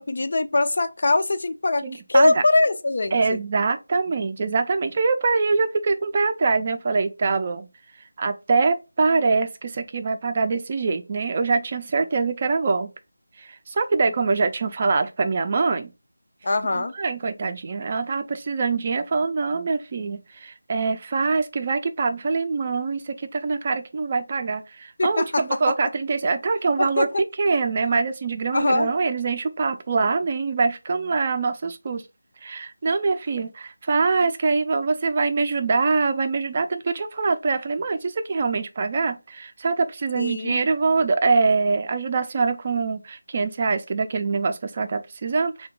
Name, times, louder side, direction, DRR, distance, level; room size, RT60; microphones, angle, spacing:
voice 1, 0.0-3.4 16.4-16.9 25.0-25.7 26.8-27.1 28.5-28.9 40.1-40.6, left 2 dB, 50° left, 0.3 m, -22 dB
voice 2, 1.8-2.3 3.1-7.7 8.2-12.9 13.4-15.9 16.7-27.1 27.4-32.0 32.4-45.7, right 4 dB, 30° right, 0.4 m, -24 dB
3.6 x 2.2 x 3.6 m
figure-of-eight pair, 165°, 0 cm